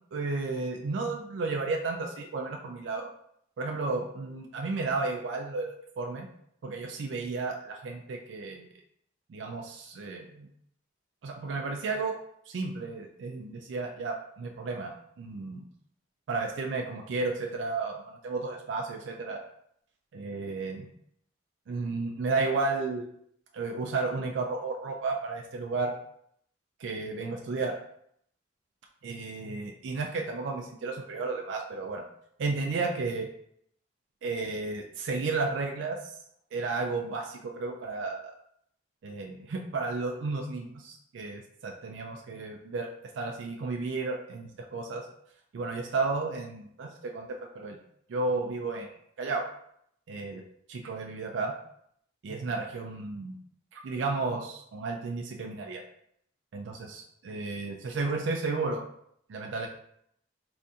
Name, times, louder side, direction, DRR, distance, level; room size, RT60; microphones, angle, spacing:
voice 1, 0.1-3.1 3.6-6.3 6.6-8.7 9.3-10.5 11.2-12.1 12.5-14.9 15.2-15.6 16.3-19.4 20.1-20.9 21.7-23.0 23.5-25.9 26.8-27.8 29.0-32.0 32.4-33.3 34.2-36.0 36.5-38.3 39.0-42.9 43.1-45.0 45.5-47.8 48.1-49.5 50.1-50.4 50.7-51.5 52.2-53.4 53.7-55.8 56.5-58.8 59.3-59.7, right 3 dB, 75° right, 2 dB, 0.4 m, -33 dB
3.4 x 2.6 x 2.6 m, 0.70 s
head